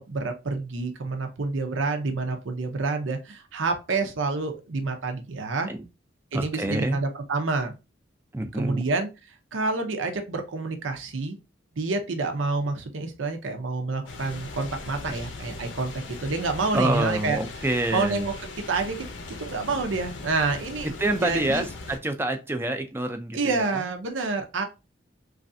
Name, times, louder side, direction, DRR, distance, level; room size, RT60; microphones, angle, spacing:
voice 1, 0.0-5.7 6.3-7.7 8.5-9.1 9.5-11.4 11.8-17.4 17.9-19.1 19.4-21.7 23.3-24.6, right 3 dB, 90° right, 5 dB, 0.6 m, -28 dB
voice 2, 6.3-7.0 8.3-8.8 16.7-18.2 21.0-23.8, right 1 dB, 10° right, 6 dB, 0.4 m, -27 dB
sound 1, 14.1-22.0, left 3 dB, 75° left, 0.6 m, -39 dB
3.1 x 2.5 x 2.6 m, 0.27 s
head